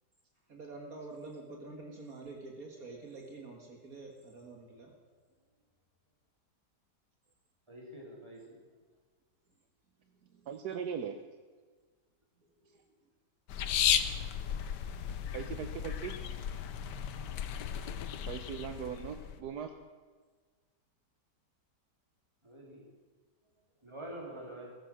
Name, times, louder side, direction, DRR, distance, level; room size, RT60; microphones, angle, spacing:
voice 1, 0.5-4.9 10.0-10.5 12.4-12.7, right 3 dB, 55° right, 1 dB, 2.3 m, -47 dB
voice 2, 7.7-8.6 22.4-22.9 23.8-24.7, right 1 dB, 15° right, -3 dB, 3.9 m, -46 dB
voice 3, 10.5-11.2 15.3-16.1 18.3-19.8, right 8 dB, 70° right, 7 dB, 1.4 m, -39 dB
sound 1, 13.5-19.4, left 9 dB, 80° left, 1.5 m, -34 dB
16.0 x 14.0 x 6.3 m, 1.4 s
omnidirectional pair, 1.8 m